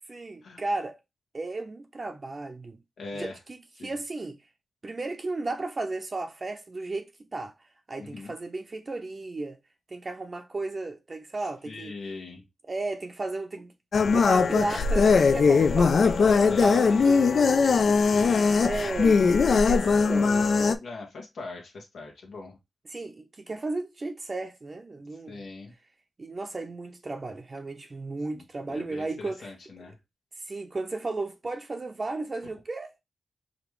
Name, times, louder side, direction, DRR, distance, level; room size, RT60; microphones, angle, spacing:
voice 1, 0.1-1.0 1.3-2.8 3.1-4.4 4.8-7.5 7.9-9.6 9.9-11.9 12.7-13.7 14.0-18.0 18.6-20.8 22.9-25.5 26.2-29.5 30.4-33.0, right 2 dB, 35° right, 0.6 m, -34 dB
voice 2, 3.0-3.4 3.8-4.0 8.0-8.3 11.7-12.4 16.0-17.1 18.0-19.0 20.8-22.6 25.3-25.7 28.3-29.9, left 3 dB, 90° left, 1.2 m, -41 dB
sound 1, 13.9-20.8, left 5 dB, 65° left, 0.4 m, -20 dB
5.0 x 2.5 x 3.1 m
wide cardioid pair, 110°, 0 cm